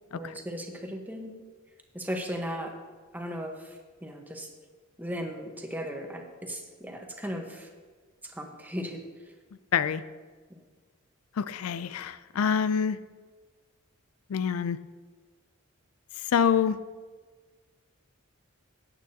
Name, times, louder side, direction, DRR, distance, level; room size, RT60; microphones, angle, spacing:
voice 1, 0.1-1.3 1.9-2.8 3.1-4.5 5.0-7.7 8.2-9.3 10.5-10.6, equal, 10° right, 2 dB, 1.1 m, -37 dB
voice 2, 11.4-13.0 14.3-14.8 16.3-16.8, left 7 dB, 80° left, 14 dB, 0.4 m, -26 dB
17.5 x 8.8 x 2.8 m, 1.4 s
head